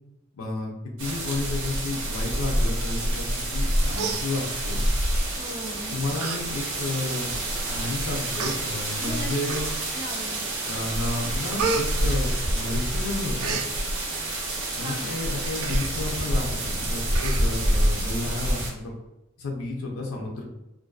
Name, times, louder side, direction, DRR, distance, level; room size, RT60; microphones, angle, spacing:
voice 1, 0.4-0.7 1.0-4.8 5.9-7.4 7.7-9.7 10.7-13.6 14.7-18.9 19.4-20.4, left 2 dB, 85° left, 0 dB, 0.6 m, -32 dB
sound 1, 1.0-18.7, right 1 dB, 65° right, 0.7 m, -27 dB
Human voice, 3.5-3.7 3.9-4.8 5.6-5.8 6.2-6.4 6.8-6.9 7.7-7.8 8.3-8.6 9.5-10.0 10.5-10.9 11.1-12.8 13.1-13.7 15.6-15.9 16.3-16.4 16.6-16.8 17.1-17.8 18.2-18.3, right 5 dB, 90° right, 0.3 m, -31 dB
voice 2, 5.4-6.2 9.0-9.3 9.9-10.5 14.8-15.2, equal, 20° right, -2 dB, 0.5 m, -38 dB
2.5 x 2.2 x 2.3 m, 0.91 s
head